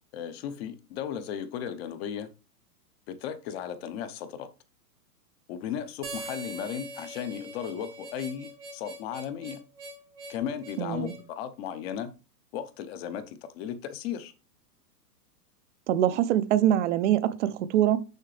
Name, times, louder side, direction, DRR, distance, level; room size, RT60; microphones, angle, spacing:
voice 1, 0.1-2.3 3.1-4.5 5.5-9.6 10.3-12.1 12.5-14.3, left 9 dB, 40° left, 0.9 m, -35 dB
Harmonica, 6.0-11.2, right 2 dB, 5° right, 0.3 m, -42 dB
voice 2, 10.8-11.1 15.9-18.0, right 11 dB, 50° right, 0.7 m, -24 dB
6.6 x 5.5 x 3.3 m
hypercardioid pair, 140°, 46 cm